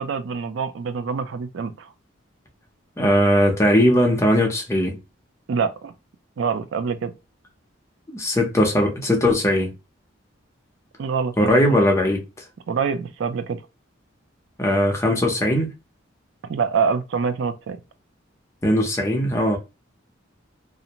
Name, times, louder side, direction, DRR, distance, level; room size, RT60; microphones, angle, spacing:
voice 1, 0.0-1.9 5.5-5.9 6.4-7.1 11.0-11.8 12.7-13.6 16.5-17.8, right 5 dB, 65° right, 0.4 m, -25 dB
voice 2, 3.0-5.0 8.1-9.7 11.4-12.2 14.6-15.7 18.6-19.6, equal, 15° left, 0.6 m, -19 dB
2.5 x 2.1 x 2.8 m
head